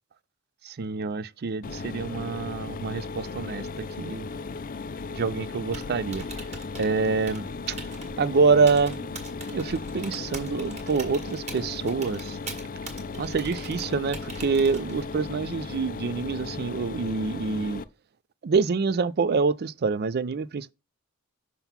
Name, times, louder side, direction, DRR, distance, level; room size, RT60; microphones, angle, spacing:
voice 1, 0.6-3.7 4.0-4.3 5.1-6.2 6.8-7.8 8.2-9.1 9.5-12.4 13.2-17.8 18.4-20.7, right 4 dB, 45° right, 0.4 m, -26 dB
Mechanisms, 1.6-17.8, left 4 dB, 40° left, 0.4 m, -36 dB
Typing, 5.6-15.2, right 3 dB, 30° right, 1.7 m, -43 dB
5.8 x 3.7 x 5.7 m
head